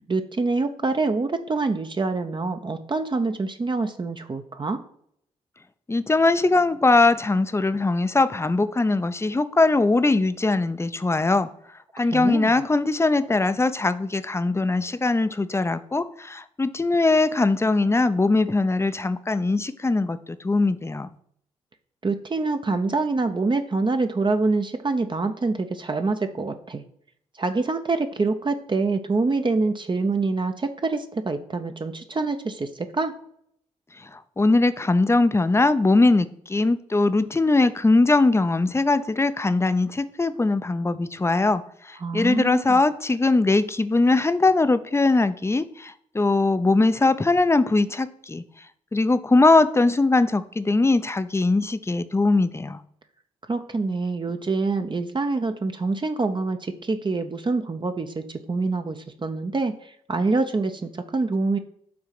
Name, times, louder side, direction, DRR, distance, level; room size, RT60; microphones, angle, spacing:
voice 1, 0.1-4.8 12.0-12.5 22.0-26.8 27.4-33.1 42.0-42.8 53.5-61.6, right 3 dB, 30° right, 0.7 m, -26 dB
voice 2, 5.9-11.5 11.9-21.1 34.0-48.4 48.9-52.8, left 3 dB, 15° left, 0.5 m, -21 dB
6.0 x 3.6 x 6.0 m
hypercardioid pair, 40°, 16 cm